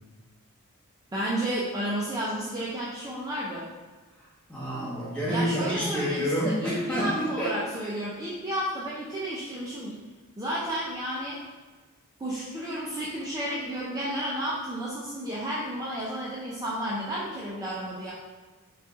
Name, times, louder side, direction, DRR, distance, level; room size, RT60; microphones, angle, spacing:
voice 1, 1.1-3.7 5.3-10.0 10.4-11.4 12.2-18.1, equal, 15° right, -6 dB, 0.4 m, -32 dB
voice 2, 4.2-7.9, equal, 5° left, -9 dB, 1.2 m, -29 dB
3.9 x 2.4 x 3.7 m, 1.3 s
head